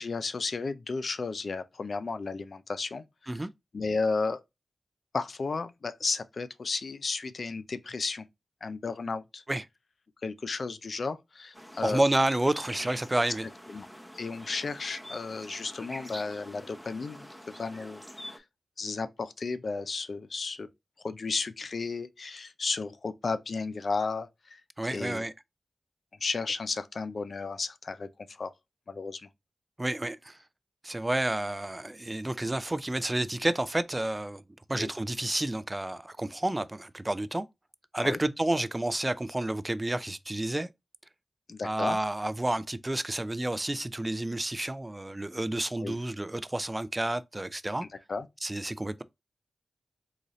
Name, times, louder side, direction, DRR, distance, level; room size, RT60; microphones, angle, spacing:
voice 1, 0.0-3.3 3.7-4.4 5.1-8.2 8.6-9.4 10.2-12.0 13.7-13.9 14.1-17.3 17.6-18.3 18.8-20.7 21.0-24.6 24.9-25.2 26.2-28.5 28.9-29.3 34.7-34.9 38.0-38.2 41.5-42.0 45.8-46.0 48.1-48.3, left 4 dB, 70° left, 0.4 m, -33 dB
sound 1, 11.5-18.4, equal, 10° left, 0.7 m, -45 dB
voice 2, 11.8-13.4 24.8-25.3 29.8-30.4 30.8-34.4 34.7-37.4 37.9-40.7 41.6-47.9 48.4-49.0, right 1 dB, 25° right, 0.3 m, -30 dB
4.0 x 2.6 x 3.0 m
cardioid pair, 55°, 0 cm